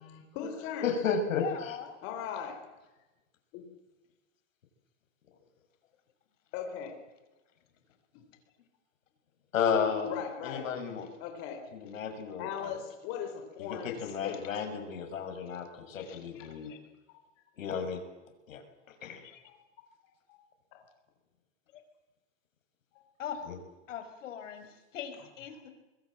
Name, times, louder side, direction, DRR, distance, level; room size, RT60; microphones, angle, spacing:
voice 1, 0.0-0.9 2.0-2.6 3.5-3.6 6.5-6.9 8.1-8.2 10.0-10.6 11.2-11.6 12.4-14.4 16.3-16.4 19.4-19.6 20.3-20.4 22.9-23.0, left 8 dB, 35° left, 3 dB, 4.0 m, -39 dB
voice 2, 0.8-1.8 9.5-10.2 10.4-11.1 11.7-12.8 13.6-16.7 17.6-18.0 18.5-18.6 19.0-19.2 23.5-23.6, left 6 dB, 85° left, 5 dB, 6.5 m, -33 dB
voice 3, 1.4-2.0 16.0-16.8 19.2-19.4 21.7-21.8 23.2-23.4 23.9-25.7, left 8 dB, 70° left, 7 dB, 5.6 m, -41 dB
25.5 x 21.5 x 7.7 m, 1.1 s
supercardioid pair, 155°, 39 cm